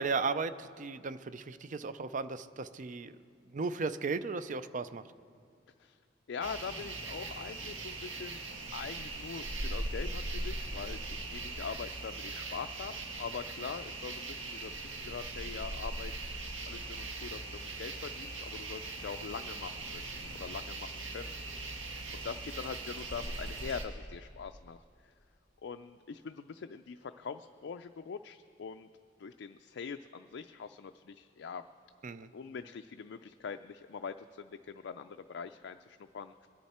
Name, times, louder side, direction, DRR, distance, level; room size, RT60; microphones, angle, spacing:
voice 1, 0.0-3.1 3.5-5.0 32.0-32.3, right 4 dB, 40° right, 13 dB, 0.5 m, -35 dB
voice 2, 6.3-8.5 8.7-16.1 16.7-21.8 22.1-24.8 25.0-25.1 25.6-28.9 29.2-31.6 32.3-36.5, left 6 dB, 65° left, 8 dB, 0.4 m, -43 dB
sound 1, 6.4-23.8, right 2 dB, 85° right, 1.7 m, -40 dB
23.0 x 10.5 x 4.3 m, 2.2 s
head